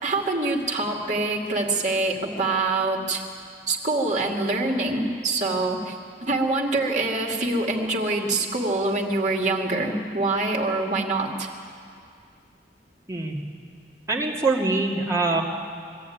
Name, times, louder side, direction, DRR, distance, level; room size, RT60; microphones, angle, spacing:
voice 1, 0.0-3.2 3.7-6.0 6.2-11.5, right 2 dB, 45° right, -1 dB, 2.5 m, -25 dB
voice 2, 14.1-15.4, right 3 dB, 20° right, -4 dB, 2.3 m, -23 dB
22.5 x 14.0 x 9.4 m, 2.3 s
head